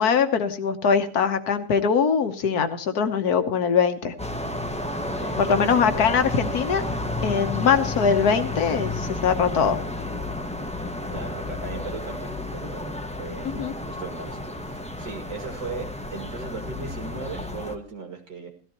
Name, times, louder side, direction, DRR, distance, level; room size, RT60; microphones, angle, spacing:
voice 1, 0.0-4.1 5.4-6.8 7.2-9.8 13.4-13.7, left 6 dB, 65° left, 9 dB, 1.5 m, -22 dB
sound 1, 4.2-17.8, left 2 dB, 5° left, 0.7 m, -31 dB
voice 2, 5.1-5.9 11.1-18.5, right 4 dB, 85° right, 2 dB, 3.0 m, -37 dB
16.5 x 13.5 x 3.0 m, 0.42 s
omnidirectional pair, 1.8 m